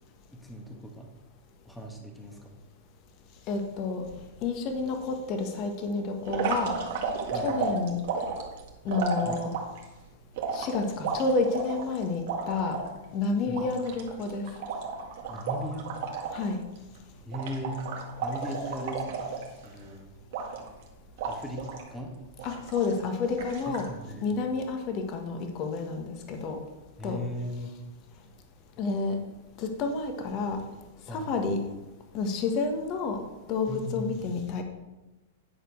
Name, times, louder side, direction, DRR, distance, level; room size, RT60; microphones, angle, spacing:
voice 1, 0.3-1.1 1.6-2.5 7.3-7.5 9.2-9.4 13.5-13.6 15.3-15.9 17.2-17.8 18.2-19.3 19.6-20.1 21.2-22.1 23.6-24.3 27.0-27.7 31.1-31.5 33.7-34.2, equal, 5° left, 1 dB, 1.5 m, -38 dB
voice 2, 3.5-4.0 4.4-6.7 7.4-8.0 8.8-9.5 10.5-12.8 13.1-14.4 16.3-16.6 22.4-23.8 24.2-26.6 27.0-27.2 28.8-29.2 29.6-30.6 31.1-31.6 32.1-33.2 33.5-34.6, left 4 dB, 40° left, 4 dB, 1.5 m, -29 dB
sound 1, 6.2-9.8 10.4-12.9 13.2-13.3 13.5-16.5 16.7-17.0 17.3-19.8 20.3-20.8 21.2-21.9 22.4-23.0 23.4-23.9, right 5 dB, 60° right, 1.9 m, -33 dB
10.0 x 4.3 x 6.4 m, 1.1 s
hypercardioid pair, 135°, 0 cm